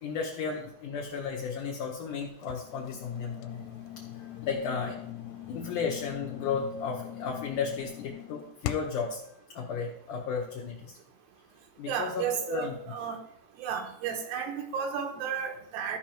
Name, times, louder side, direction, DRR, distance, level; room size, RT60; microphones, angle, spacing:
voice 1, 0.0-3.6 4.4-5.0 5.5-9.2 9.6-11.0 11.8-12.8, left 5 dB, 70° left, -1 dB, 2.0 m, -34 dB
sound 1, 2.4-9.1, left 13 dB, 85° left, 2.7 m, -41 dB
voice 2, 11.9-13.2 13.6-16.0, right 7 dB, 80° right, 3 dB, 3.1 m, -33 dB
14.0 x 5.1 x 4.6 m, 0.78 s
omnidirectional pair, 4.9 m